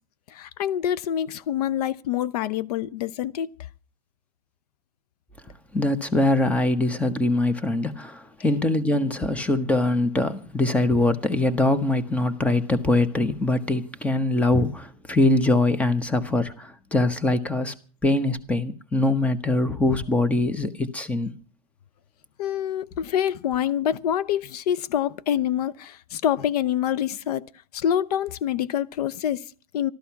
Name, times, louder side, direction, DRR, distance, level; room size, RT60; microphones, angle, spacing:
voice 1, 0.3-3.5 22.4-27.5 27.7-29.9, left 10 dB, 80° left, 0.7 m, -26 dB
voice 2, 5.7-17.7 18.0-21.4, left 2 dB, 5° left, 0.9 m, -23 dB
14.0 x 13.0 x 5.8 m
supercardioid pair, 150°, 20 cm